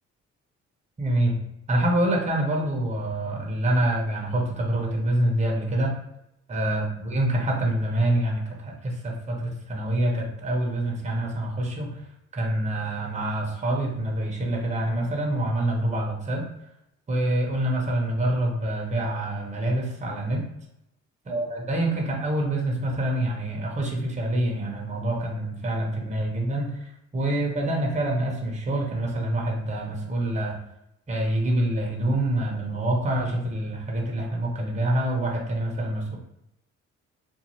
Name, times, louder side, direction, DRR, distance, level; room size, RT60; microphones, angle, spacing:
voice 1, 1.0-1.4 1.7-6.0 6.5-12.0 12.3-16.5 17.1-20.4 21.3-30.6 31.1-36.2, right 1 dB, 25° right, 0 dB, 0.8 m, -26 dB
2.6 x 2.4 x 3.0 m, 0.83 s
cardioid pair, 90°, 30 cm